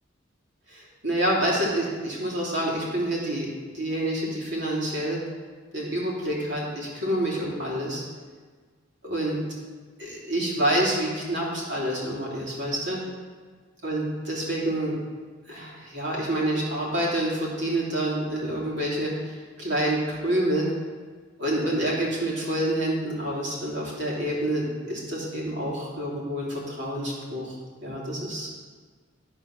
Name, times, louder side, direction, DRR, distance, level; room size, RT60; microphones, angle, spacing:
voice 1, 0.7-3.5 3.7-5.2 5.7-8.0 9.0-9.4 10.0-13.0 13.8-14.9 15.5-20.7 21.4-27.5 27.8-28.5, right 1 dB, 65° right, -5 dB, 3.0 m, -27 dB
12.0 x 4.4 x 6.0 m, 1.5 s
head